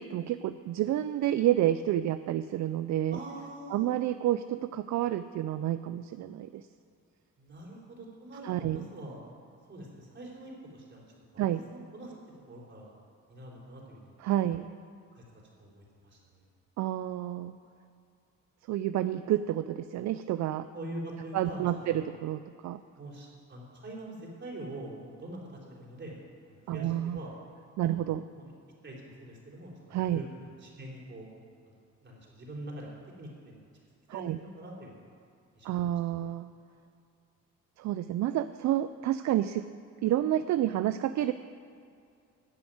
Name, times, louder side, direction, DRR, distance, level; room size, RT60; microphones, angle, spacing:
voice 1, 0.0-3.2 3.7-6.7 8.4-8.9 11.4-11.6 14.2-14.7 16.8-17.6 18.7-20.7 21.3-22.8 26.7-27.2 27.8-28.2 29.9-30.2 34.1-34.4 35.6-36.5 37.8-39.7 40.0-41.3, right 12 dB, 65° right, 12 dB, 0.5 m, -29 dB
voice 2, 3.1-3.9 7.4-9.2 9.7-11.1 11.3-12.1 12.5-12.9 13.3-14.2 15.1-16.2 20.7-22.1 23.0-26.1 26.4-27.3 27.9-28.5 28.8-31.3 31.7-32.9 33.2-33.6 34.1-35.1 35.5-35.9 36.3-36.4, right 1 dB, 35° right, -3 dB, 3.9 m, -44 dB
11.5 x 7.2 x 9.2 m, 2.4 s
cardioid pair, 90°, 30 cm